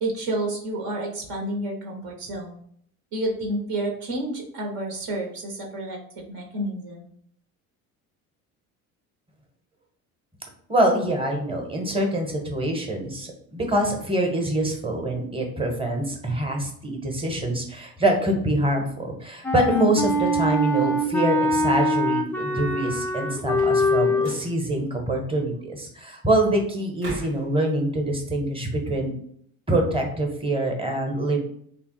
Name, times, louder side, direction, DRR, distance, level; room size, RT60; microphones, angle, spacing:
voice 1, 0.0-2.6 3.1-7.1, right 1 dB, 60° right, -1 dB, 1.0 m, -30 dB
voice 2, 10.7-29.1 29.7-31.4, right 1 dB, 10° right, 3 dB, 1.0 m, -25 dB
Wind instrument woodwind instrument, 19.4-24.3, left 1 dB, 5° left, 0.3 m, -23 dB
sound 1, 23.4-23.9 24.2-24.6 27.0-27.5, right 2 dB, 90° right, 0.9 m, -38 dB
3.3 x 2.2 x 3.1 m, 0.64 s
hypercardioid pair, 60°, 44 cm